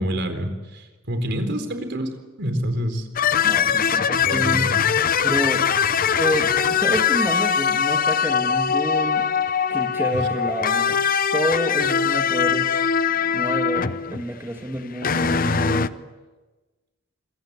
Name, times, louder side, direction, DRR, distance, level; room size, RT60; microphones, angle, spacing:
voice 1, 0.0-2.1 2.4-3.1 4.2-4.9 10.1-10.3, equal, 60° right, 7 dB, 4.3 m, -27 dB
sound 1, 3.2-14.3 14.8-15.9, left 7 dB, 45° left, 0.8 m, -21 dB
voice 2, 3.4-4.7 5.2-5.6 6.2-9.3 9.7-11.0 11.3-12.7 13.3-16.0, equal, 10° right, 3 dB, 2.2 m, -28 dB
26.5 x 23.0 x 8.4 m, 1.2 s
head